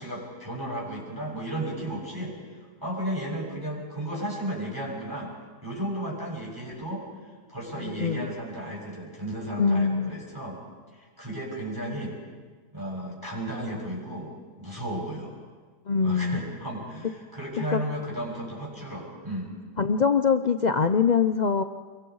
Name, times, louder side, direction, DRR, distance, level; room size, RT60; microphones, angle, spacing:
voice 1, 0.0-2.4 2.8-5.3 5.6-7.1 7.5-10.6 10.9-12.1 12.7-14.3 14.6-15.3 16.0-19.5, right 1 dB, 10° right, -3 dB, 7.0 m, -34 dB
voice 2, 7.8-8.3 9.6-10.1 15.9-16.4 17.7-17.8 19.8-21.6, left 5 dB, 85° left, 9 dB, 0.4 m, -23 dB
28.5 x 23.0 x 4.8 m, 1.4 s
omnidirectional pair, 1.8 m